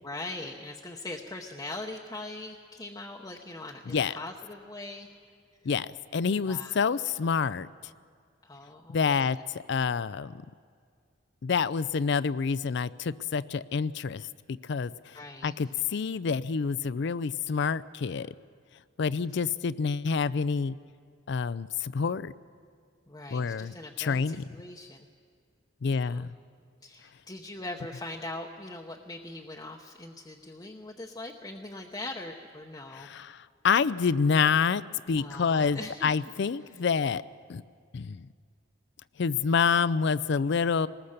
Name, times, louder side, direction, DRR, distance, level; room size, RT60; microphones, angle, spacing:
voice 1, 0.0-5.1 6.4-6.9 8.4-9.3 15.1-15.6 19.2-19.3 23.1-25.1 25.9-26.3 26.8-33.1 35.2-36.3, left 2 dB, 20° left, -1 dB, 0.9 m, -41 dB
voice 2, 5.6-7.7 8.9-10.3 11.4-14.9 15.4-18.3 19.0-20.8 21.3-22.3 23.3-24.4 25.8-26.3 33.0-34.8 35.1-37.2 37.5-37.6 37.9-38.3 39.2-40.9, left 5 dB, 60° left, 17 dB, 0.4 m, -27 dB
20.5 x 19.5 x 6.6 m, 2.1 s
head